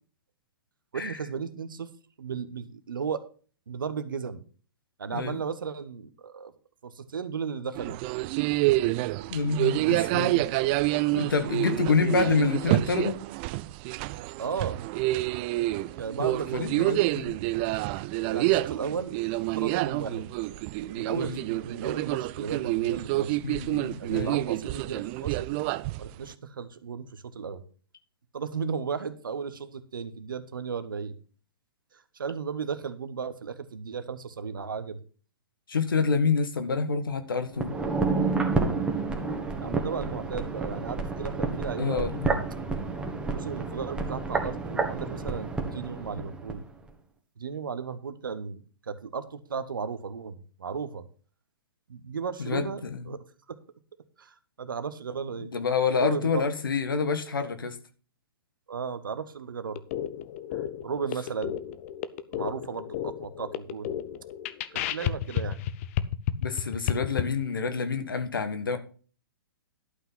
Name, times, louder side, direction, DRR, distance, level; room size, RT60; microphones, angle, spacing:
voice 1, 0.9-3.3 3.7-4.4 5.0-6.5 6.8-8.0 11.7-12.0 12.2-12.4 14.4-14.8 16.0-17.1 18.2-19.2 19.6-20.3 20.8-23.4 24.0-25.5 26.0-27.6 28.3-31.2 31.9-35.0 39.6-42.1 43.2-46.6 47.4-51.0 51.9-53.2 53.5-53.6 54.2-55.5 56.0-56.3 58.7-59.8 60.5-61.6 62.3-63.9 64.7-65.6, right 6 dB, 60° right, 12 dB, 1.2 m, -35 dB
sound 1, 7.7-26.3, right 18 dB, 30° right, 0.4 m, -28 dB
voice 2, 9.3-10.4 11.1-13.2 16.2-17.3 21.1-21.4 23.4-24.3 35.7-37.7 41.8-42.3 52.4-53.0 55.4-57.8 66.4-68.8, left 5 dB, 65° left, 9 dB, 1.7 m, -27 dB
sound 2, 37.5-46.6 46.9-47.0, right 3 dB, 10° right, 1.7 m, -30 dB
sound 3, 59.7-67.2, left 11 dB, 35° left, 0.7 m, -32 dB
12.0 x 5.7 x 5.7 m, 0.38 s
figure-of-eight pair, 115°, 12 cm